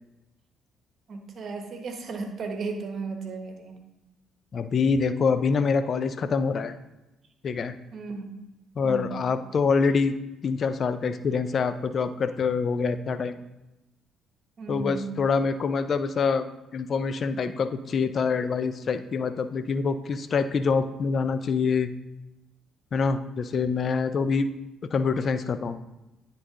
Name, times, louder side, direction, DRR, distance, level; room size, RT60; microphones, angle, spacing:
voice 1, 1.1-3.8 7.9-8.3 8.8-9.2 14.6-15.1, right 4 dB, 50° right, 5 dB, 1.1 m, -35 dB
voice 2, 4.5-6.8 7.4-7.7 8.8-10.1 10.4-13.4 14.7-16.5 16.7-21.9 22.9-24.5 24.9-25.8, left 5 dB, 50° left, 11 dB, 0.5 m, -25 dB
9.7 x 4.0 x 3.8 m, 0.96 s
hypercardioid pair, 50°, 0 cm